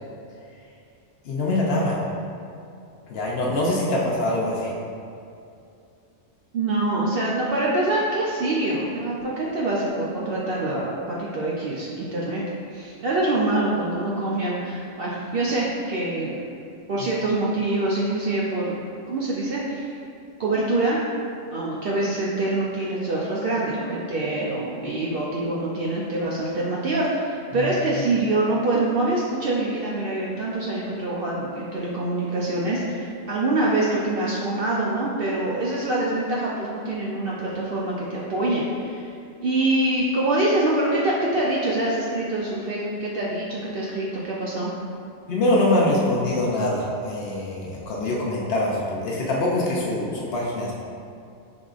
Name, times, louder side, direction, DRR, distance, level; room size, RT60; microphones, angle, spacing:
voice 1, 1.2-2.1 3.1-4.7 27.5-27.7 45.3-50.7, left 1 dB, 60° left, -4 dB, 0.7 m, -24 dB
voice 2, 6.5-12.4 12.7-16.4 16.9-18.7 19.1-19.9 20.4-21.0 21.5-39.1 39.4-44.7, right 2 dB, 65° right, -5 dB, 0.6 m, -25 dB
4.9 x 3.5 x 2.4 m, 2.5 s
omnidirectional pair, 1.3 m